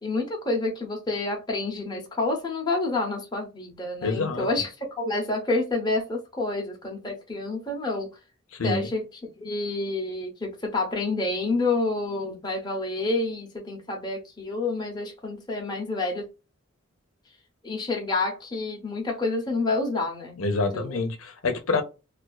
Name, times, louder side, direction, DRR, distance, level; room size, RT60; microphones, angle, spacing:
voice 1, 0.0-4.7 5.0-8.1 8.6-9.0 9.4-16.2 17.6-20.4 20.7-21.0, left 2 dB, 20° left, 0.6 m, -28 dB
voice 2, 4.0-4.5 8.5-8.9 20.4-21.8, left 3 dB, 85° left, 0.6 m, -27 dB
2.4 x 2.3 x 2.3 m
head